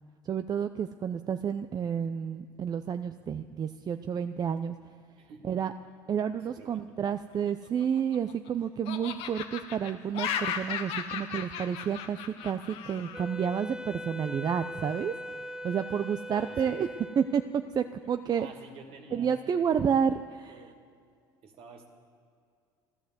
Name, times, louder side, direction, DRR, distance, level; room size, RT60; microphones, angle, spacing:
voice 1, 0.2-4.7 5.4-5.7 6.1-15.1 15.6-16.9 17.2-18.5 19.1-20.6, right 7 dB, 40° right, 9 dB, 0.6 m, -30 dB
voice 2, 6.6-6.9 16.3-16.7 18.3-19.7 20.5-20.8 21.4-21.9, right 3 dB, 60° right, 3 dB, 2.4 m, -49 dB
Laughter, 7.6-8.5 8.9-13.2, left 8 dB, 70° left, 1.4 m, -36 dB
Wind instrument woodwind instrument, 13.1-17.7, equal, 5° right, 0.7 m, -41 dB
13.5 x 13.0 x 7.7 m, 2.3 s
supercardioid pair, 80°, 11 cm